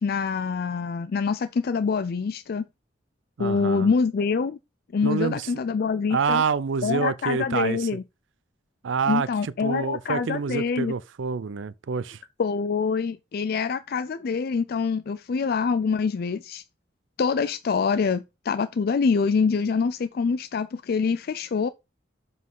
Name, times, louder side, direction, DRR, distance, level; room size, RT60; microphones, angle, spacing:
voice 1, 0.0-2.6 3.4-4.6 4.9-6.4 6.8-8.0 9.1-10.9 12.4-16.6 17.2-21.7, left 5 dB, 55° left, 0.4 m, -25 dB
voice 2, 3.4-3.9 5.0-5.6 6.1-7.9 8.8-12.2, right 5 dB, 75° right, 0.5 m, -27 dB
7.3 x 4.0 x 5.4 m
head